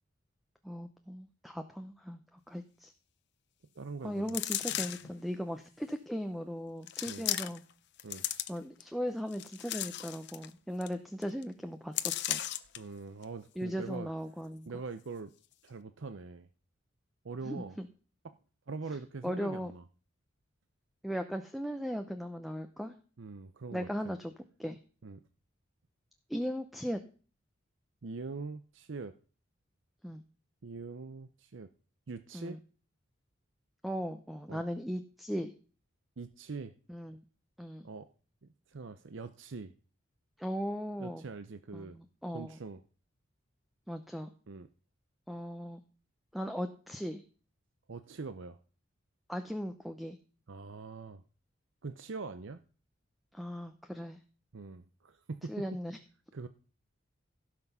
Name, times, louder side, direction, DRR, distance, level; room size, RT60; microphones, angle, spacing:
voice 1, 0.6-2.9 4.0-7.6 8.5-12.4 13.6-14.7 17.4-17.9 19.2-19.7 21.0-23.0 23.7-24.3 24.6-24.8 26.3-27.0 30.0-30.2 32.3-32.6 33.8-35.5 36.9-37.2 37.6-37.9 40.4-41.2 41.7-42.6 43.9-44.3 45.3-45.8 46.3-47.2 49.3-50.2 53.3-54.2 55.5-56.0, equal, ahead, 7 dB, 0.7 m, -38 dB
voice 2, 3.8-4.4 7.1-7.3 8.0-8.2 12.8-14.1 14.7-15.3 15.6-16.5 17.2-17.8 18.2-18.3 18.7-19.8 23.2-24.1 25.0-25.2 28.0-29.1 30.6-31.7 32.1-32.6 34.5-34.6 36.2-36.7 37.8-38.1 38.7-39.7 41.0-42.0 42.3-42.8 44.5-44.7 47.9-48.6 50.5-51.2 51.8-52.6 54.5-55.6 56.3-56.5, right 4 dB, 65° right, 10 dB, 0.6 m, -43 dB
sound 1, 4.3-5.1 5.9-6.0 6.9-7.7 8.0-8.8 9.3-10.5 10.8-10.9 11.2-11.4 12.0-12.8 13.2-13.3, left 13 dB, 60° left, 0.7 m, -35 dB
16.5 x 6.0 x 5.5 m, 0.39 s
head